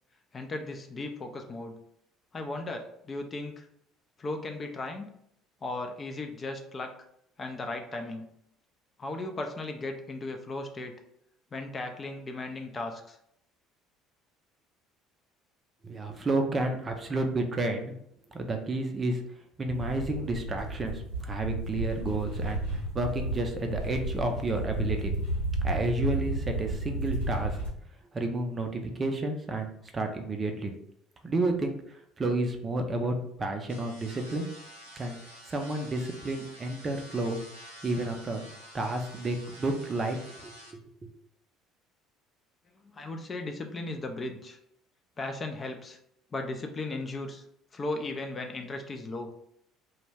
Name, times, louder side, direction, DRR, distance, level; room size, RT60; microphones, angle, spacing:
voice 1, 0.3-1.8 2.3-3.7 4.2-5.1 5.6-6.9 7.4-8.2 9.0-10.9 11.5-13.2 42.8-44.6 45.2-46.0 46.3-47.4 47.7-49.3, left 2 dB, 35° left, 4 dB, 0.4 m, -36 dB
voice 2, 15.8-17.9 18.3-19.2 19.6-25.1 25.6-27.6 28.1-29.7 29.9-30.7 31.2-34.5 35.0-35.2 35.5-37.4 37.8-38.4 38.7-40.2 40.4-41.1, right 2 dB, 30° right, 4 dB, 0.5 m, -31 dB
sound 1, 19.7-27.7, right 1 dB, 90° left, 1.0 m, -32 dB
sound 2, 33.7-40.7, equal, 85° right, 0.6 m, -49 dB
2.2 x 2.0 x 3.2 m, 0.73 s
hypercardioid pair, 60°, 0 cm